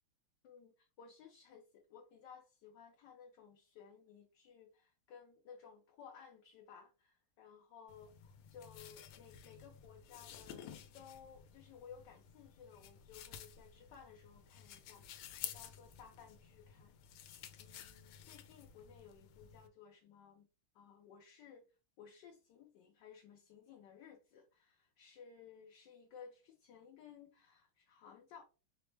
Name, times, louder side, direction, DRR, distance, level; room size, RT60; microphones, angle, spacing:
voice 1, 0.4-10.6 10.9-17.3 17.6-20.5 20.7-21.7 22.0-28.4, left 7 dB, 70° left, 1.2 m, -58 dB
sound 1, 7.9-19.7, left 9 dB, 90° left, 1.5 m, -53 dB
5.0 x 2.0 x 3.2 m
omnidirectional pair, 2.3 m